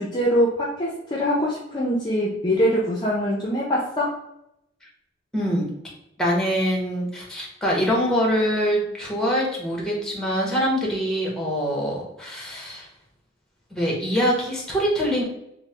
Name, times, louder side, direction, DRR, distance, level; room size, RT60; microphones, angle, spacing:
voice 1, 0.0-4.1, equal, 25° left, -4 dB, 0.5 m, -23 dB
voice 2, 5.3-5.7 6.2-12.9 13.7-15.2, equal, 5° left, -3 dB, 0.8 m, -24 dB
3.1 x 2.1 x 3.2 m, 0.80 s
head